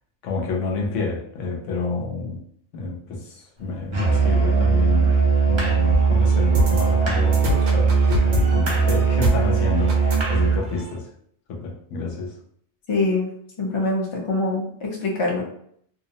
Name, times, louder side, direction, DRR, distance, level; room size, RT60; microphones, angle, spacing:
voice 1, 0.2-2.4 2.7-8.0 8.2-11.1 11.5-12.3, left 3 dB, 85° left, 0 dB, 1.0 m, -29 dB
Musical instrument, 3.9-10.7, right 5 dB, 45° right, 0.4 m, -19 dB
sound 1, 5.9-10.9, equal, 65° right, 1.0 m, -26 dB
voice 2, 12.9-13.3 13.6-15.4, left 2 dB, 35° left, -2 dB, 0.5 m, -24 dB
2.7 x 2.0 x 2.7 m, 0.65 s
omnidirectional pair, 1.2 m